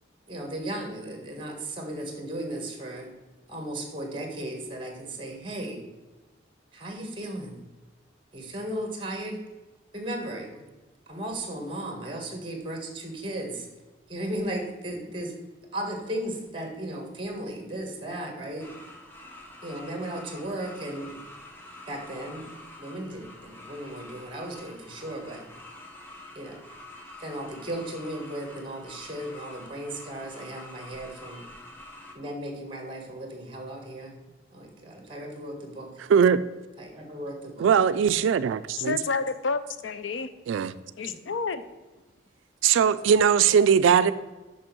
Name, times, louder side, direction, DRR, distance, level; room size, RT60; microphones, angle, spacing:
voice 1, 0.3-3.1 3.5-5.8 6.7-7.6 8.3-9.4 9.9-10.6 11.1-13.7 14.1-15.3 15.7-18.7 19.6-21.2 21.9-25.5 26.3-26.6 27.2-31.4 32.1-34.2 34.5-35.9 36.8-37.7 41.0-41.2, right 1 dB, 25° right, 3 dB, 1.5 m, -36 dB
sound 1, 18.6-32.1, left 1 dB, 10° left, 1.0 m, -47 dB
voice 2, 36.1-36.4 37.6-39.0 40.5-40.7 42.6-44.1, right 7 dB, 80° right, 14 dB, 0.3 m, -20 dB
voice 3, 38.8-40.3 41.0-41.6, left 4 dB, 75° left, 12 dB, 0.5 m, -29 dB
6.2 x 5.8 x 6.1 m, 1.2 s
head